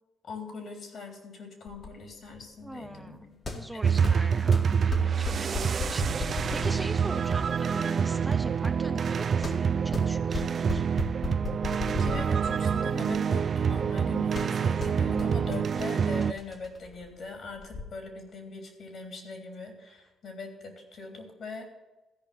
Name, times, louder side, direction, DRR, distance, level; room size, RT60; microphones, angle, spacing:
voice 1, 0.2-4.3 4.7-5.3 11.9-21.7, left 4 dB, 55° left, 4 dB, 3.3 m, -42 dB
sound 1, 1.7-17.8, left 3 dB, 40° left, 1.9 m, -38 dB
voice 2, 2.6-3.3 3.5-10.8, right 1 dB, 5° right, 8 dB, 0.6 m, -41 dB
sound 2, 3.8-16.3, right 6 dB, 50° right, 0.4 m, -27 dB
14.0 x 5.4 x 9.2 m, 1.1 s
cardioid pair, 90°, 0 cm